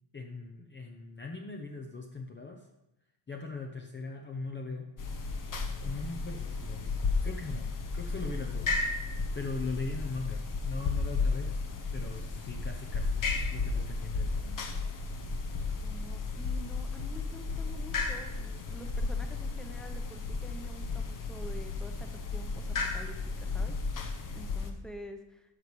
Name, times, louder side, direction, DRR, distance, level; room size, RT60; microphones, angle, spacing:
voice 1, 0.1-2.7 3.3-4.9 5.8-6.9 7.2-9.1 9.3-11.6 11.9-13.2 13.5-14.7, left 3 dB, 25° left, 2 dB, 0.7 m, -40 dB
sound 1, 5.0-24.7, left 3 dB, 45° left, 1.1 m, -33 dB
voice 2, 15.8-25.6, equal, ahead, 5 dB, 1.0 m, -48 dB
12.5 x 6.5 x 3.2 m, 0.90 s
cardioid pair, 85°, 45 cm